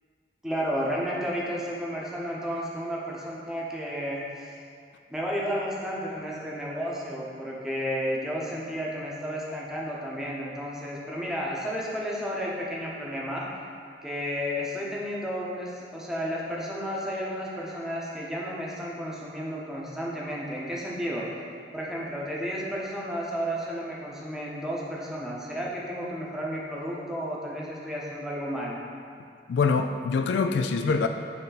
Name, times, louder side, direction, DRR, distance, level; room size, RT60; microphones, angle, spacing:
voice 1, 0.4-4.5 5.1-13.5 14.0-21.3 21.7-28.8, equal, 5° right, -5 dB, 0.8 m, -32 dB
voice 2, 29.5-31.1, left 4 dB, 75° left, 7 dB, 0.3 m, -24 dB
7.9 x 3.4 x 4.0 m, 2.4 s
head